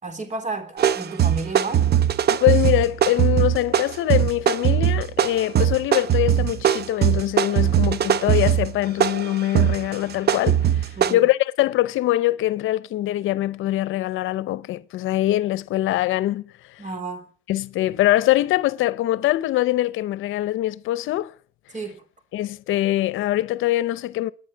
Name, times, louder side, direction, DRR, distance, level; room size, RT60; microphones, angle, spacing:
voice 1, 0.0-1.9 11.0-11.2 16.8-17.3 21.7-22.0, right 3 dB, 40° right, 3.6 m, -32 dB
sound 1, 0.8-11.1, right 10 dB, 55° right, 0.8 m, -20 dB
voice 2, 2.3-10.8 11.1-16.4 17.5-21.3 22.3-24.3, left 15 dB, 85° left, 0.7 m, -23 dB
28.5 x 9.5 x 4.5 m
cardioid pair, 90°, 20 cm